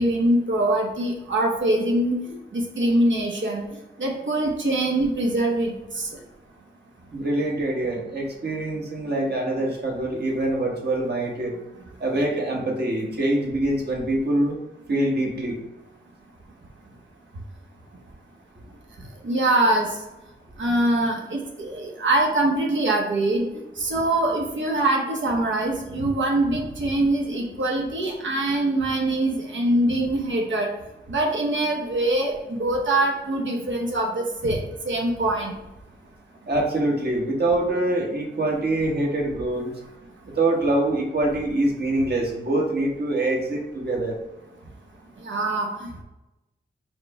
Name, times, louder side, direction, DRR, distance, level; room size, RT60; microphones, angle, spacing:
voice 1, 0.0-3.6 4.0-6.1 19.2-19.9 20.6-23.5 23.8-30.7 31.1-34.6 34.8-35.6 45.2-46.0, right 1 dB, 75° right, 0 dB, 1.0 m, -23 dB
voice 2, 7.1-11.5 12.0-14.6 14.9-15.6 36.4-39.7 40.2-44.2, right 1 dB, 55° right, -1 dB, 1.2 m, -24 dB
4.8 x 2.2 x 4.7 m, 0.96 s
cardioid pair, 50°, 20 cm